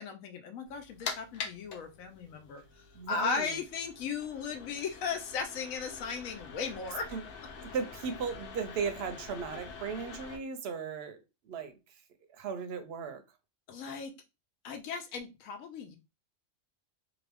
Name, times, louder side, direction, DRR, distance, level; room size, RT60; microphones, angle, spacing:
voice 1, 0.0-7.1 13.7-14.1 14.6-16.0, left 5 dB, 85° left, 1.1 m, -36 dB
sound 1, 0.7-10.4, left 5 dB, 55° left, 0.7 m, -45 dB
voice 2, 2.9-3.6 7.1-7.2 7.6-11.2 11.4-11.7 12.3-13.2, right 5 dB, 65° right, 0.7 m, -36 dB
2.7 x 2.5 x 3.4 m
omnidirectional pair, 1.4 m